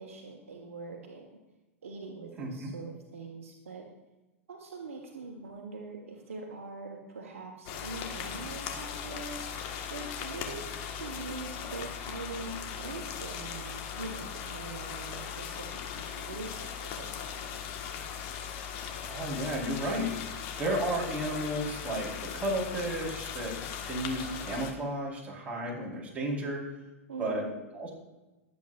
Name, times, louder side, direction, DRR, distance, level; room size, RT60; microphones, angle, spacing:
voice 1, 0.0-1.4 1.8-3.8 4.5-9.4 9.9-17.6 27.1-27.5, right 3 dB, 70° right, 1 dB, 1.7 m, -43 dB
voice 2, 2.4-2.7 19.1-26.6 27.2-27.4 27.7-28.0, right 1 dB, 15° right, -3 dB, 4.6 m, -33 dB
sound 1, 7.7-24.7, left 8 dB, 45° left, 1.7 m, -39 dB
22.5 x 8.6 x 2.6 m, 1.1 s
figure-of-eight pair, 95°, 8 cm